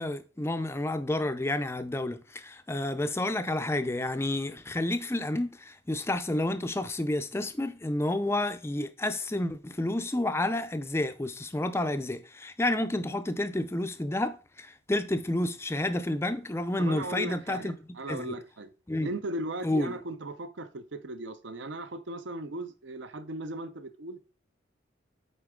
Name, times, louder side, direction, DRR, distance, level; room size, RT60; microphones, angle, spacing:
voice 1, 0.0-17.7 18.1-18.3 18.9-19.1 19.6-19.9, left 1 dB, 10° left, 0.4 m, -30 dB
voice 2, 16.8-18.7 19.0-24.3, right 1 dB, 60° right, 0.6 m, -37 dB
7.9 x 4.5 x 3.6 m
head